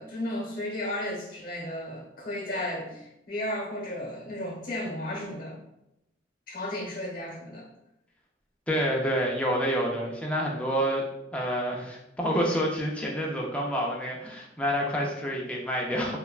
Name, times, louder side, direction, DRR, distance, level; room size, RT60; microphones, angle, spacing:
voice 1, 0.0-5.6 6.5-7.7, left 1 dB, 50° left, -2 dB, 0.9 m, -34 dB
voice 2, 8.7-11.1 11.3-16.2, equal, 5° left, -2 dB, 0.4 m, -28 dB
3.2 x 2.2 x 2.3 m, 0.86 s
head